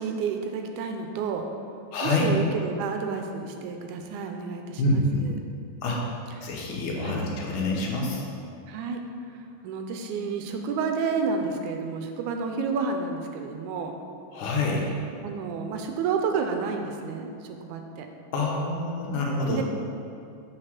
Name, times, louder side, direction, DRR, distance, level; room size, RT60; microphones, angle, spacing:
voice 1, 0.0-1.5 2.0-5.4 6.4-6.5 7.0-7.2 8.7-9.0 9.6-13.9 15.2-18.1 19.5-19.6, right 5 dB, 80° right, 4 dB, 2.0 m, -30 dB
voice 2, 1.9-2.3 4.8-5.2 5.8-6.0 6.4-8.2 14.3-14.9 18.3-19.6, left 2 dB, 75° left, -1 dB, 2.4 m, -26 dB
6.6 x 4.8 x 5.8 m, 2.5 s
omnidirectional pair, 3.6 m